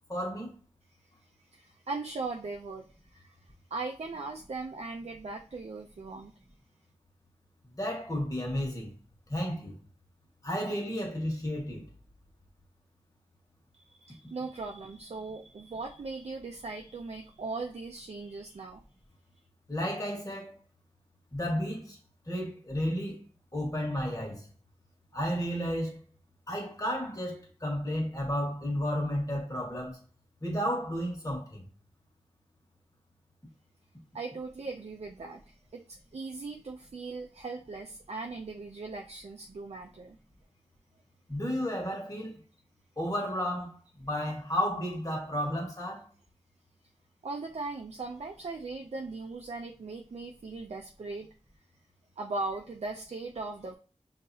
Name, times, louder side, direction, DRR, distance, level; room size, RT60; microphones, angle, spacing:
voice 1, 0.1-0.5 7.8-8.9 9.3-9.8 10.4-11.9 19.7-20.6 21.3-22.0 22.3-23.2 23.5-24.5 25.1-26.0 26.5-30.0 30.4-31.6 41.3-42.4 43.0-46.1, equal, 30° left, 1.6 m, -32 dB
voice 2, 1.5-3.4 3.7-6.3 13.7-18.8 34.1-40.2 47.2-51.3 52.2-53.7, right 3 dB, 70° right, 0.4 m, -39 dB
5.3 x 2.8 x 2.8 m
wide cardioid pair, 50°, 11 cm